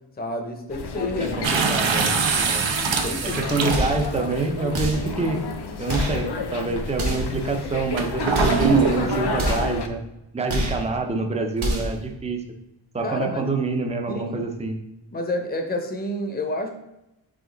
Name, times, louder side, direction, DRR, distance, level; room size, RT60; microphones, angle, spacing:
voice 1, 0.2-1.4 2.8-3.7 13.0-13.5 14.1-14.4 15.1-16.7, left 1 dB, 20° left, 3 dB, 0.8 m, -29 dB
sound 1, 0.7-9.9, left 4 dB, 55° left, 0.7 m, -31 dB
voice 2, 1.2-2.1 2.5-2.7 3.2-5.4 5.8-10.0 10.3-12.4 12.9-14.8, right 3 dB, 15° right, 4 dB, 0.6 m, -26 dB
sound 2, 1.4-4.2 5.0-5.1 8.0-9.6, right 5 dB, 70° right, 0.9 m, -23 dB
sound 3, 3.7-4.1 4.7-5.1 5.9-6.2 6.9-7.4 8.3-8.7 9.4-9.8 10.5-10.9 11.6-12.0, equal, 90° right, 1.6 m, -26 dB
5.0 x 4.8 x 3.9 m, 0.90 s
wide cardioid pair, 115°, 48 cm